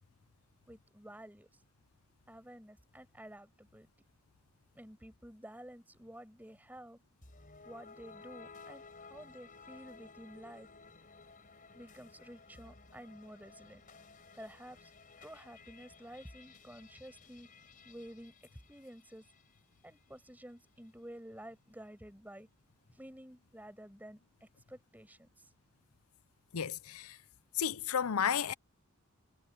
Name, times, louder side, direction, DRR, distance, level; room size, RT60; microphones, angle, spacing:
voice 1, 0.7-1.5 2.3-3.9 4.7-7.0 7.6-10.7 11.7-13.8 14.3-14.9 15.2-17.5 17.8-18.4 18.7-19.2 19.8-22.5 22.9-25.3, right 1 dB, 10° right, 5.7 m, -51 dB
sound 1, 7.2-19.5, left 4 dB, 40° left, 4.2 m, -56 dB
voice 2, 26.5-27.2 27.5-28.5, left 7 dB, 80° left, 0.6 m, -32 dB
head